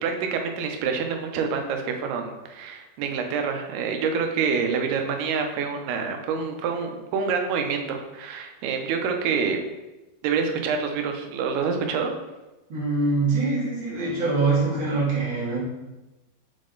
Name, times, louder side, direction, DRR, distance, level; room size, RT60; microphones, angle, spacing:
voice 1, 0.0-9.6 10.2-12.1, right 5 dB, 85° right, 4 dB, 2.7 m, -27 dB
voice 2, 12.7-15.6, right 3 dB, 45° right, -6 dB, 1.7 m, -24 dB
7.3 x 3.7 x 3.8 m, 1.1 s
omnidirectional pair, 4.5 m